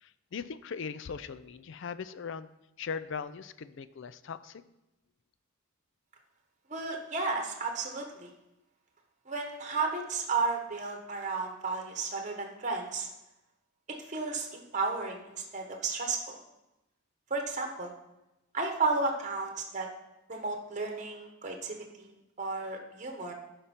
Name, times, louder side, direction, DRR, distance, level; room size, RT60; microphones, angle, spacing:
voice 1, 0.0-2.5 2.8-4.6, left 6 dB, 60° left, 13 dB, 0.4 m, -39 dB
voice 2, 6.7-8.3 9.3-13.1 14.1-16.4 17.3-17.9 18.5-19.9 20.3-23.3, right 4 dB, 35° right, 3 dB, 1.1 m, -33 dB
11.5 x 5.1 x 4.4 m, 0.93 s
head